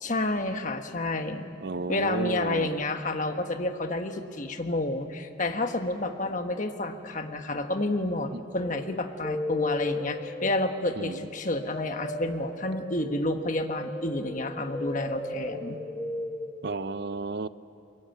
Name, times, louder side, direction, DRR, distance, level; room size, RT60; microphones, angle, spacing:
voice 1, 0.0-1.5 1.9-15.8, left 2 dB, 40° left, 6 dB, 1.4 m, -30 dB
voice 2, 1.6-2.7 8.3-8.4 11.0-11.2 16.6-17.5, right 3 dB, 55° right, 15 dB, 0.5 m, -32 dB
sound 1, 8.6-16.9, left 2 dB, 15° left, 1.2 m, -36 dB
23.5 x 22.0 x 9.2 m, 2.7 s
head